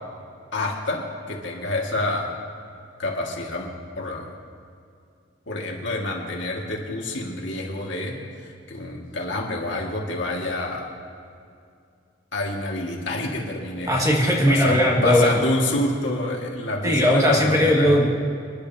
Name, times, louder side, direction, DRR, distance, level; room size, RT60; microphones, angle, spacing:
voice 1, 0.5-2.3 3.0-4.3 5.5-10.9 12.3-13.9 14.5-18.0, left 2 dB, 65° left, -1 dB, 2.0 m, -28 dB
voice 2, 13.9-15.4 16.8-18.1, equal, 15° right, -2 dB, 1.9 m, -18 dB
27.0 x 11.0 x 2.8 m, 2.3 s
head